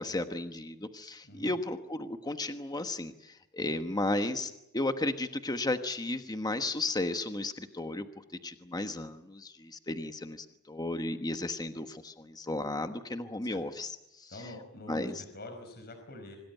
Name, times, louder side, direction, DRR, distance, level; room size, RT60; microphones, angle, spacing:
voice 1, 0.0-8.0 8.4-13.9 14.2-14.3 14.9-15.2, left 2 dB, 20° left, 8 dB, 1.2 m, -34 dB
voice 2, 1.2-1.6 13.4-13.6 14.3-16.4, left 1 dB, 45° left, 6 dB, 4.9 m, -46 dB
26.5 x 19.0 x 9.3 m, 0.89 s
head